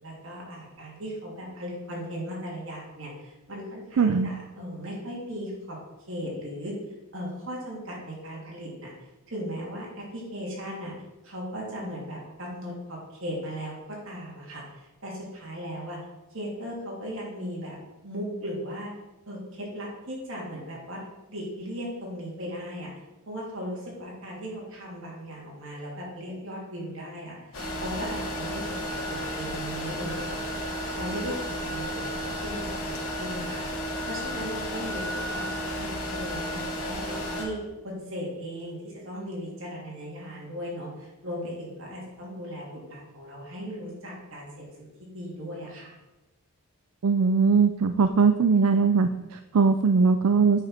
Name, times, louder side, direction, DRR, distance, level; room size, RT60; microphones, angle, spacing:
voice 1, 0.0-5.8 6.1-6.7 7.1-8.9 9.3-10.9 11.2-16.0 16.3-18.9 19.3-21.0 21.3-22.9 23.3-27.4 27.8-30.6 30.9-32.1 32.4-33.6 34.1-35.5 35.8-45.9, equal, 65° right, -4 dB, 3.1 m, -37 dB
voice 2, 4.0-4.3 47.0-50.6, right 5 dB, 90° right, 8 dB, 0.5 m, -21 dB
sound 1, 27.5-37.5, equal, 75° left, 2.4 m, -33 dB
8.8 x 5.0 x 5.7 m, 1.1 s
head